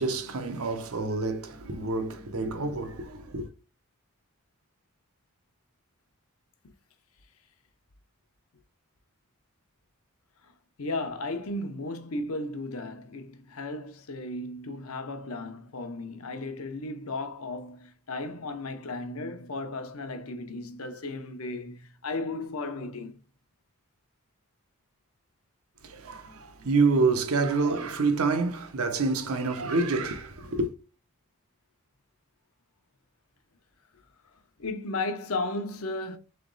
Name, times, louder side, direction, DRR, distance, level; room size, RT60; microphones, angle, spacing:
voice 1, 0.0-3.5 25.8-30.7, right 3 dB, 80° right, 0.8 m, -27 dB
voice 2, 10.8-23.2 34.6-36.2, left 2 dB, 75° left, 0.8 m, -35 dB
3.9 x 3.3 x 3.9 m
head